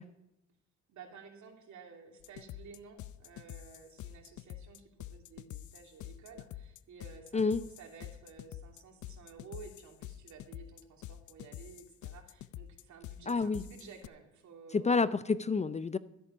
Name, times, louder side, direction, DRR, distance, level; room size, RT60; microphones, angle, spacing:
voice 1, 0.9-14.9, right 5 dB, 70° right, 2 dB, 2.9 m, -53 dB
sound 1, 2.2-14.1, left 13 dB, 75° left, 0.6 m, -47 dB
voice 2, 13.3-13.6 14.7-16.0, left 4 dB, 25° left, 15 dB, 0.5 m, -29 dB
13.5 x 8.5 x 5.6 m, 0.88 s
cardioid pair, 90°, 30 cm